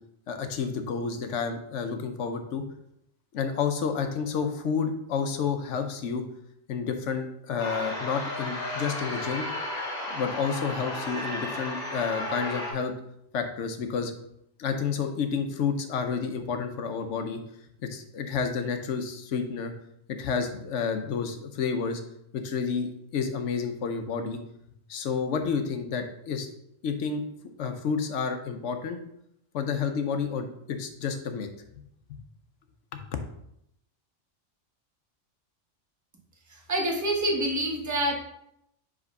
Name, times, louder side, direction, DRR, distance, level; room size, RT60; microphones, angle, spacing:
voice 1, 0.3-2.6 3.3-6.2 6.7-9.5 10.1-12.9 13.3-14.1 14.6-17.4 17.9-19.7 20.2-22.0 22.3-24.4 24.9-26.5 26.8-27.2 27.6-29.0 29.5-31.5 32.1-32.2 32.9-33.0, left 6 dB, 70° left, 7 dB, 1.0 m, -30 dB
sound 1, 7.6-12.7, left 1 dB, 35° left, 1.2 m, -33 dB
voice 2, 36.5-38.1, right 1 dB, 15° right, 0 dB, 0.8 m, -27 dB
5.0 x 3.5 x 5.3 m, 0.78 s
omnidirectional pair, 1.3 m